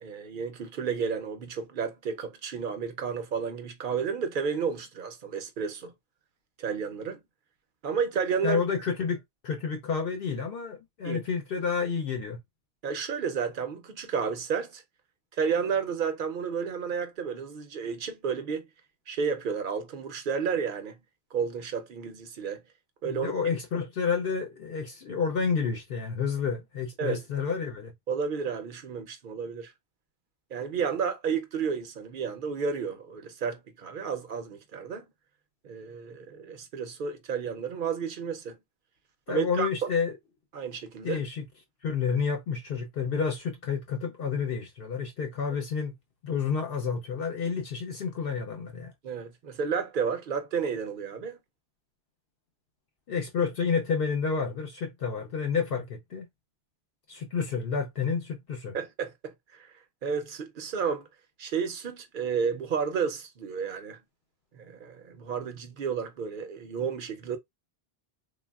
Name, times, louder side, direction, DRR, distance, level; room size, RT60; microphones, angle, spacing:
voice 1, 0.0-5.9 6.6-7.2 7.8-8.6 11.0-11.2 12.8-14.8 15.4-18.7 19.1-21.0 21.3-22.6 23.0-23.3 27.0-27.2 28.1-29.7 30.5-35.0 35.6-38.5 39.3-39.9 40.5-41.2 49.0-51.4 58.7-59.7 60.0-61.1 61.4-64.0 64.5-67.4, right 6 dB, 60° right, 0.7 m, -31 dB
voice 2, 8.4-12.4 23.1-27.9 39.3-40.1 41.0-41.5 41.8-45.9 46.2-48.9 53.1-56.3 57.1-58.7, left 6 dB, 70° left, 0.8 m, -30 dB
3.2 x 2.2 x 2.2 m
omnidirectional pair, 1.1 m